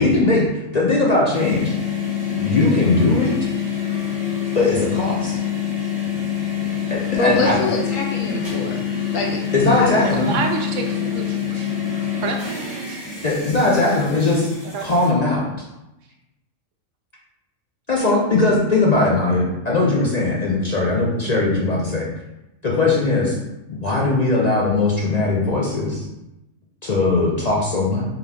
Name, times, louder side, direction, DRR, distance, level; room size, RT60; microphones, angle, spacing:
voice 1, 0.0-1.7 2.3-3.4 4.5-5.4 6.9-7.6 9.5-10.3 11.5-11.6 13.2-14.5 14.8-15.5 17.9-22.1 22.6-23.4 23.7-26.1 26.8-28.1, left 2 dB, 50° left, -4 dB, 0.5 m, -19 dB
sound 1, 1.3-15.1, left 8 dB, 20° right, 1.5 m, -26 dB
voice 2, 7.1-8.8 9.1-9.5 9.7-9.9, left 3 dB, 80° left, -1 dB, 1.2 m, -24 dB
voice 3, 10.0-11.7 12.2-12.4 12.9-13.0 14.7-14.9, right 5 dB, 75° right, 3 dB, 0.9 m, -28 dB
3.7 x 2.8 x 3.4 m, 0.94 s
omnidirectional pair, 1.3 m